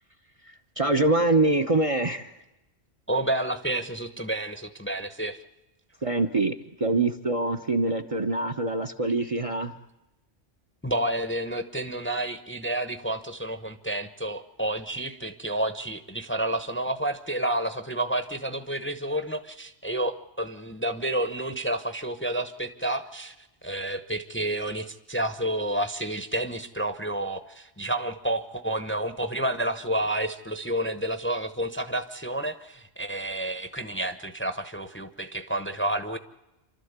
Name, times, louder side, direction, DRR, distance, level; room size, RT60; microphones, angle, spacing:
voice 1, 0.5-2.3 6.0-9.7, right 2 dB, 35° right, 8 dB, 0.9 m, -25 dB
voice 2, 3.1-5.4 10.8-36.2, right 1 dB, 10° left, 9 dB, 0.8 m, -30 dB
27.5 x 12.5 x 8.1 m, 0.97 s
omnidirectional pair, 1.1 m